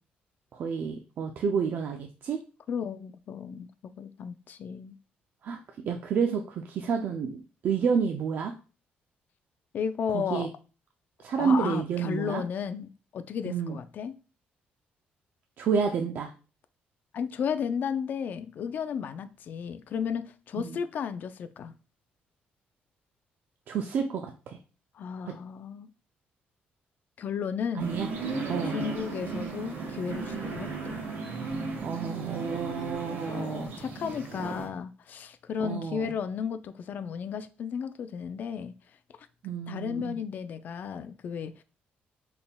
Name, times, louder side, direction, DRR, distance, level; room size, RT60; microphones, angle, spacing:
voice 1, 0.5-2.4 5.4-5.6 5.8-8.5 10.1-10.5 11.2-12.4 13.5-13.8 15.6-16.3 20.7-20.8 23.7-24.6 25.2-25.3 27.8-28.1 28.5-28.7 31.8-33.7 35.6-36.1 39.4-40.2, right 6 dB, 60° right, 0.4 m, -29 dB
voice 2, 2.7-5.0 9.7-10.5 11.4-14.1 17.1-21.7 24.9-25.9 27.2-27.9 28.6-31.0 33.1-38.7 39.7-41.6, left 7 dB, 50° left, 0.3 m, -34 dB
sound 1, 27.8-34.7, right 3 dB, 75° right, 1.4 m, -35 dB
4.1 x 3.5 x 2.2 m
cardioid pair, 125°, 4 cm